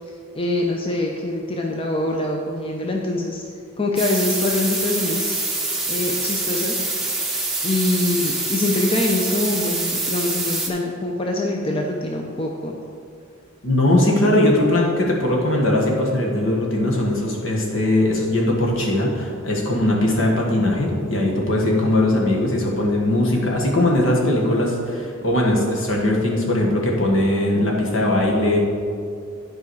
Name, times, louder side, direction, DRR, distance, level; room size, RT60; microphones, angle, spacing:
voice 1, 0.3-3.4 3.8-5.4 5.9-7.1 7.6-12.8, left 2 dB, 25° left, 0 dB, 0.6 m, -24 dB
sound 1, 4.0-10.7, right 2 dB, ahead, 0.8 m, -25 dB
voice 2, 13.6-28.6, left 1 dB, 70° left, -1 dB, 1.5 m, -20 dB
11.0 x 4.9 x 4.7 m, 2.3 s
head